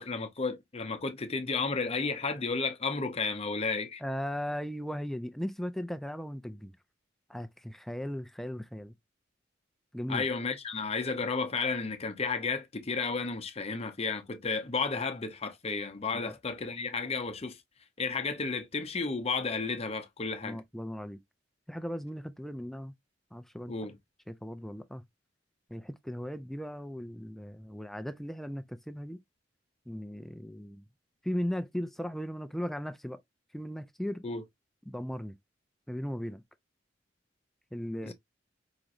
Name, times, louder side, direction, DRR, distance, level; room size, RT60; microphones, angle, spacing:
voice 1, 0.0-4.0 10.1-17.6 18.0-20.6 23.7-24.0 34.2-34.4 38.0-38.1, left 4 dB, 35° left, 0.7 m, -32 dB
voice 2, 4.0-6.7 7.3-8.9 9.9-10.3 16.1-16.3 20.4-21.2 21.7-22.9 23.3-23.8 24.3-25.0 25.7-29.2 29.9-30.8 31.2-33.2 33.5-34.3 34.9-35.4 35.9-36.4 37.7-38.1, equal, ahead, 0.4 m, -37 dB
4.9 x 3.0 x 2.5 m
head